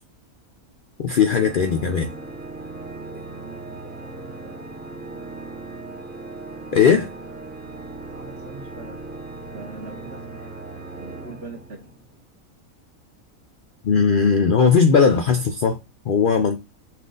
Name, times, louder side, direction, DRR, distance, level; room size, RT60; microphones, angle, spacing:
voice 1, 1.0-2.1 6.7-7.1 13.8-15.8 16.1-16.6, left 6 dB, 90° left, 0.4 m, -18 dB
Organ, 1.2-12.2, right 3 dB, 10° right, 0.6 m, -38 dB
voice 2, 2.6-4.6 8.0-9.0 9.5-11.8, right 3 dB, 50° right, 1.1 m, -43 dB
5.7 x 2.4 x 3.8 m
omnidirectional pair, 1.5 m